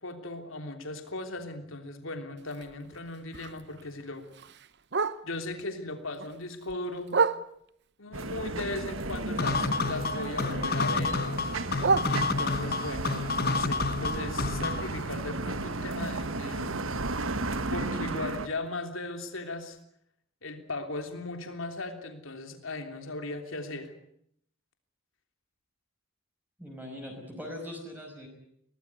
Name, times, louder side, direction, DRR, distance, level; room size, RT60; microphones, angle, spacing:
voice 1, 0.0-4.3 5.2-7.2 8.0-11.2 12.1-16.7 17.7-19.8 20.4-23.9, left 2 dB, 70° left, 6 dB, 3.2 m, -37 dB
Bark, 2.4-5.6 6.0-7.9 8.3-10.2 10.4-12.8 13.2-17.1 17.4-17.5 17.8-18.2 18.7-18.8 19.1-19.2 19.7-19.8, right 4 dB, 55° right, 0.9 m, -34 dB
sound 1, 8.1-18.5, right 2 dB, 70° right, 1.4 m, -34 dB
sound 2, 9.4-14.9, left 4 dB, 45° left, 1.0 m, -29 dB
voice 2, 26.6-28.3, left 1 dB, 10° right, 0 dB, 5.4 m, -41 dB
23.0 x 18.5 x 9.6 m, 0.72 s
head